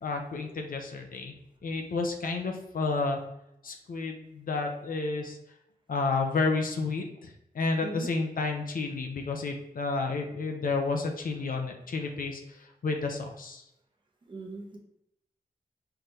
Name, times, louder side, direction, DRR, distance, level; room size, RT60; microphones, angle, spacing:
voice 1, 0.0-1.3 1.6-3.2 3.6-5.4 5.9-13.6, left 3 dB, 65° left, 3 dB, 0.7 m, -31 dB
voice 2, 14.3-14.8, right 2 dB, 30° right, 0 dB, 0.9 m, -39 dB
5.7 x 3.3 x 2.8 m, 0.82 s
wide cardioid pair, 160°, 15 cm